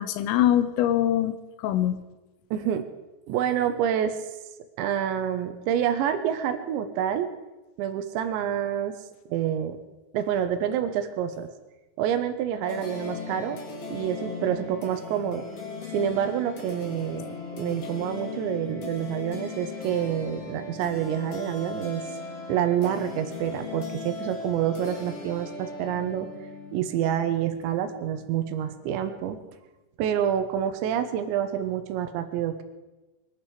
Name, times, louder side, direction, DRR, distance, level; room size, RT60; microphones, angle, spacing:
voice 1, 0.0-2.0, left 11 dB, 85° left, 12 dB, 3.4 m, -23 dB
voice 2, 2.5-2.8 3.3-4.2 4.8-7.3 7.8-8.9 9.3-9.8 10.1-11.5 12.0-13.6 13.9-15.5 15.9-17.3 17.6-22.0 22.5-26.3 26.7-29.4 30.0-32.6, right 9 dB, 75° right, 9 dB, 3.0 m, -27 dB
sound 1, 12.6-29.3, left 4 dB, 45° left, 2.2 m, -38 dB
22.5 x 11.5 x 4.9 m, 1.1 s
omnidirectional pair, 5.8 m